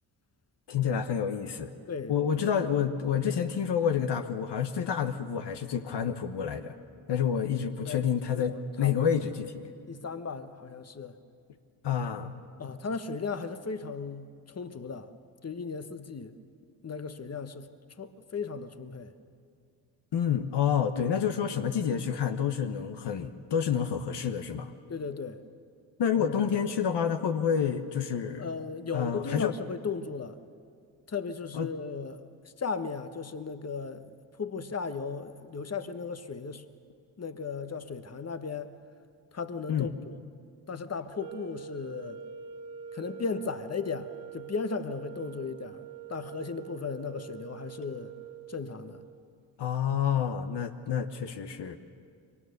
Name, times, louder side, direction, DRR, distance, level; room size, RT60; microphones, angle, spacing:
voice 1, 0.7-1.7 2.1-6.7 7.1-9.5 11.8-12.3 20.1-24.7 26.0-28.5 28.9-29.5 31.5-31.7 39.7-39.9 49.6-51.8, left 8 dB, 60° left, 8 dB, 1.2 m, -28 dB
voice 2, 1.9-2.5 3.3-3.4 7.1-7.3 7.8-9.1 9.9-11.2 12.6-15.1 15.4-16.4 16.8-17.7 18.0-19.1 21.5-21.6 24.9-25.4 26.1-26.5 28.4-30.4 31.1-32.2 32.6-34.1 34.4-36.6 37.2-38.7 39.3-40.2 40.7-42.2 42.9-45.8 46.1-48.1 48.5-49.0, left 5 dB, 30° left, 11 dB, 1.3 m, -36 dB
sound 1, 41.1-49.3, right 9 dB, 70° right, 2.0 m, -45 dB
23.0 x 18.5 x 6.7 m, 2.3 s
supercardioid pair, 50°, 48 cm